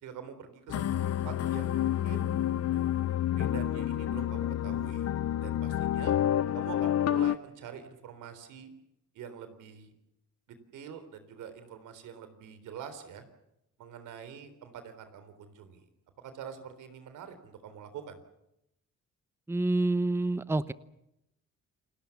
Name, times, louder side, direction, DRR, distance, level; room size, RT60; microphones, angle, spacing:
voice 1, 0.0-2.3 3.3-5.1 5.4-6.1 6.5-8.7 9.1-9.9 10.5-13.2 13.8-15.8 16.2-18.2, right 7 dB, 85° right, 10 dB, 3.8 m, -45 dB
sound 1, 0.7-7.4, left 11 dB, 55° left, 0.8 m, -29 dB
voice 2, 19.5-20.7, right 2 dB, 10° right, 15 dB, 0.9 m, -27 dB
29.5 x 19.0 x 7.2 m, 0.83 s
cardioid pair, 90°, 30 cm